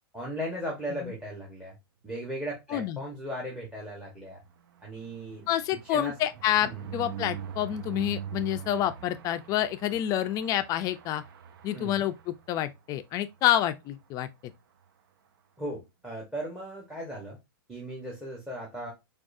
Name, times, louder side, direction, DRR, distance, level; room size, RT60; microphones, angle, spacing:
voice 1, 0.1-1.7 2.0-4.4 4.8-5.4 5.9-6.1 6.6-6.9 11.7-12.1 15.6-17.4 17.7-18.9, equal, 5° right, 1.1 m, -37 dB
sound 1, 4.0-12.8 13.2-13.4 13.6-13.7 14.0-14.3, right 8 dB, 75° right, 0.6 m, -43 dB
voice 2, 5.5-11.2 11.6-14.5, left 12 dB, 30° left, 0.4 m, -28 dB
4.7 x 2.4 x 2.5 m
hypercardioid pair, 130°, 12 cm